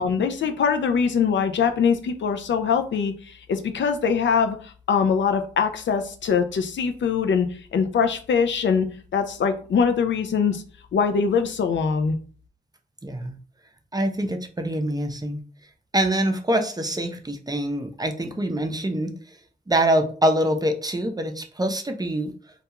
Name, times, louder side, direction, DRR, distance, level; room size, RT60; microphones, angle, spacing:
voice 1, 0.0-7.5 7.7-8.9 9.1-10.6 10.9-12.1, left 6 dB, 65° left, 0.4 m, -22 dB
voice 2, 13.0-13.3 13.9-15.4 15.9-19.2 19.7-22.3, right 1 dB, 20° right, 0.5 m, -25 dB
2.3 x 2.2 x 2.9 m
supercardioid pair, 40°, 20 cm